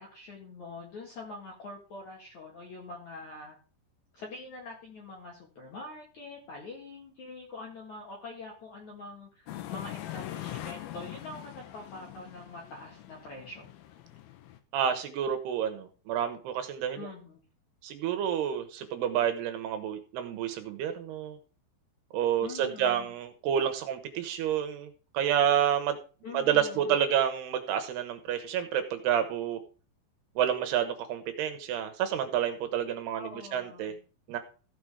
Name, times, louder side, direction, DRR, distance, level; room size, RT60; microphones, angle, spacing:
voice 1, 0.0-3.6 4.1-13.7 17.0-17.4 22.4-23.1 26.2-27.0 33.1-34.0, left 3 dB, 50° left, -1 dB, 2.6 m, -44 dB
sound 1, 9.5-14.6, left 13 dB, 75° left, 2.4 m, -42 dB
voice 2, 14.7-17.1 17.8-21.4 22.1-26.0 26.3-29.6 30.4-33.9 34.3-34.4, right 9 dB, 75° right, 8 dB, 2.8 m, -29 dB
15.5 x 5.1 x 4.9 m, 0.36 s
omnidirectional pair, 5.2 m